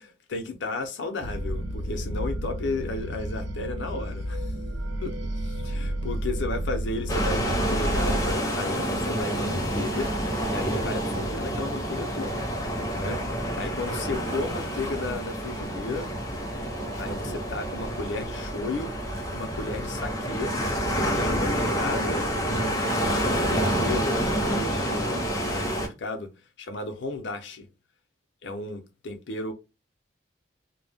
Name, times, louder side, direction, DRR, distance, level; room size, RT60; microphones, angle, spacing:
voice 1, 0.3-4.5 5.0-10.1 10.5-12.5 12.9-13.2 13.6-16.1 17.0-18.9 19.3-20.5 21.1-26.3 26.6-27.7 28.4-29.5, left 3 dB, 65° left, 0.5 m, -34 dB
sound 1, 1.2-8.3, right 1 dB, 70° right, 0.4 m, -31 dB
sound 2, 7.1-25.9, equal, 15° left, 0.6 m, -28 dB
2.1 x 2.0 x 3.4 m
head